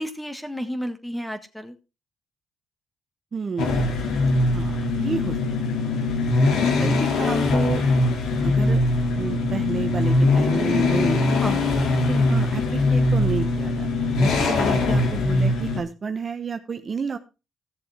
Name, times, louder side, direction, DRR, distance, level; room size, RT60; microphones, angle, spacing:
voice 1, 0.0-1.7 11.4-11.7, equal, 5° left, 8 dB, 1.6 m, -31 dB
voice 2, 3.3-4.0 4.4-5.4 6.6-7.8 8.4-8.8 9.1-11.3 12.1-17.2, right 5 dB, 40° right, 8 dB, 1.1 m, -30 dB
sound 1, 3.6-15.8, left 2 dB, 80° left, 2.4 m, -21 dB
15.0 x 7.1 x 3.5 m, 0.29 s
cardioid pair, 90°, 0 cm